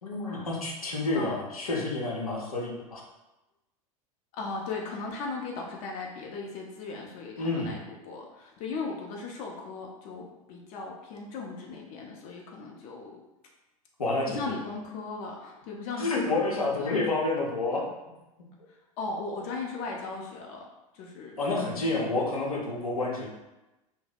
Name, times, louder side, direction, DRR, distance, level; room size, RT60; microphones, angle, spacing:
voice 1, 0.0-3.0 7.4-7.8 14.0-14.3 16.0-17.8 21.4-23.3, left 2 dB, 75° left, -2 dB, 0.7 m, -29 dB
voice 2, 4.3-13.2 14.3-17.0 18.7-20.6 20.9-22.0, left 3 dB, 40° left, -1 dB, 0.5 m, -37 dB
2.7 x 2.0 x 4.0 m, 1.0 s
figure-of-eight pair, 85°, 18 cm